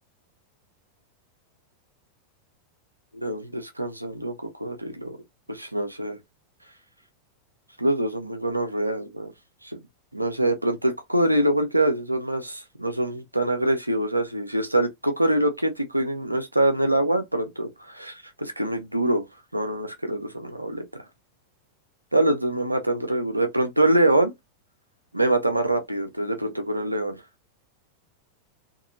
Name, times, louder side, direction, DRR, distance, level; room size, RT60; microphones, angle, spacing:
voice 1, 3.1-5.2 5.5-6.2 7.8-9.3 9.6-9.8 10.1-19.3 19.5-20.8 22.1-24.3 25.1-27.2, right 1 dB, 85° right, 0.6 m, -24 dB
2.8 x 2.6 x 2.6 m
figure-of-eight pair, 90°, 0 cm